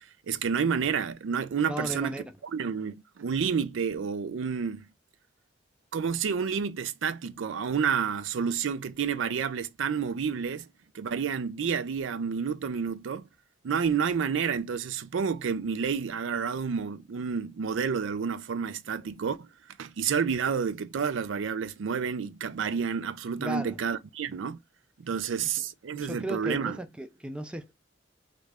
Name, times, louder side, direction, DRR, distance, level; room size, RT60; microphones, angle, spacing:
voice 1, 0.0-2.1 2.5-4.8 5.9-10.7 10.9-13.2 13.6-19.5 19.8-24.6 25.0-26.8, right 6 dB, 80° right, 0.4 m, -30 dB
voice 2, 1.7-2.4 23.4-23.8 25.4-25.6 26.0-27.7, right 1 dB, 5° right, 0.4 m, -36 dB
3.1 x 2.5 x 3.4 m
head